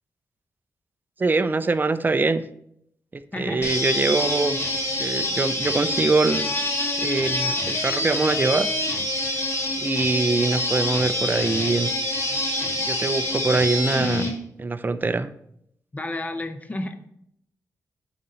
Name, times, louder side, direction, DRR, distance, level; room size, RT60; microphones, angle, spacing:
voice 1, 1.2-2.4 3.1-4.6 5.0-6.6 7.0-8.7 9.8-11.9 12.8-14.3 14.6-15.3, right 3 dB, 30° right, 12 dB, 0.4 m, -23 dB
voice 2, 3.3-3.8 15.9-17.1, left 2 dB, 25° left, 8 dB, 0.7 m, -31 dB
sound 1, 3.6-14.3, left 1 dB, 40° left, 2.1 m, -26 dB
9.4 x 3.9 x 4.3 m, 0.74 s
cardioid pair, 85°, 7 cm